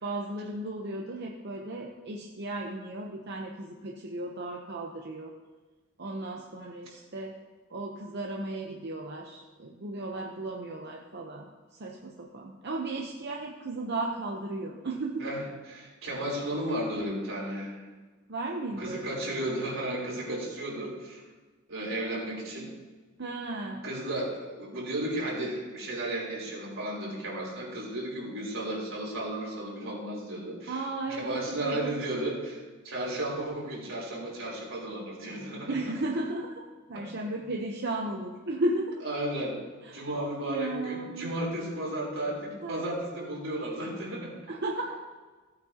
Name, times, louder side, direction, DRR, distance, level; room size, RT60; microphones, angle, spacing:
voice 1, 0.0-5.3 6.0-7.3 7.7-11.4 11.7-15.2 18.3-19.1 23.2-23.8 30.7-32.0 35.7-36.6 36.9-39.0 39.8-41.3 42.6-42.8 44.5-45.0, right 2 dB, 55° right, 0 dB, 0.8 m, -35 dB
voice 2, 15.2-17.8 18.8-21.2 21.7-22.7 23.8-35.8 36.9-37.0 39.0-39.6 39.9-44.3, right 1 dB, 85° right, -4 dB, 3.6 m, -34 dB
15.0 x 8.8 x 2.9 m, 1.3 s
head